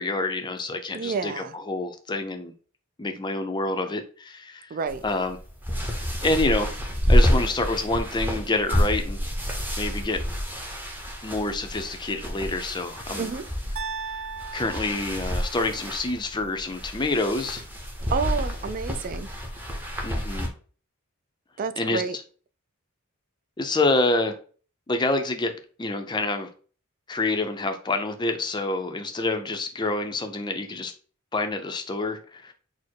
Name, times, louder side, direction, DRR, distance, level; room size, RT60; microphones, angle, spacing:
voice 1, 0.0-2.5 3.0-4.7 5.0-5.4 6.2-6.7 7.1-9.2 9.8-10.2 11.2-13.3 14.0-14.2 14.5-17.6 20.0-20.5 21.8-22.0 23.6-24.4 24.9-25.5 25.8-26.5 27.1-30.9 31.3-32.5, left 2 dB, 20° left, 0.5 m, -27 dB
voice 2, 0.9-1.5 4.7-5.0 13.2-13.4 18.1-19.3 21.6-22.2, right 5 dB, 40° right, 0.3 m, -29 dB
sound 1, 4.9-20.5, equal, 10° right, 0.8 m, -28 dB
sound 2, 13.8-15.9, right 5 dB, 85° right, 0.7 m, -37 dB
4.2 x 2.1 x 4.5 m
head